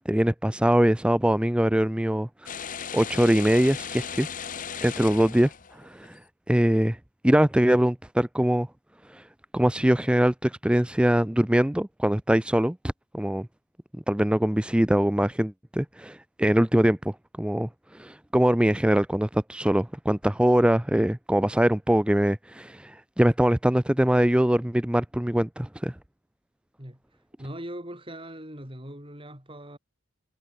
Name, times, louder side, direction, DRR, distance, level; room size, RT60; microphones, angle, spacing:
voice 1, 0.1-2.3 2.9-4.3 4.8-6.2 6.5-7.0 7.2-8.7 9.1-9.2 9.5-12.8 13.1-13.5 14.1-25.9, right 1 dB, 5° right, 0.4 m, -23 dB
sound 1, 2.5-6.1, left 7 dB, 35° left, 0.9 m, -37 dB
voice 2, 26.8-29.8, right 1 dB, 25° right, 6.7 m, -40 dB
head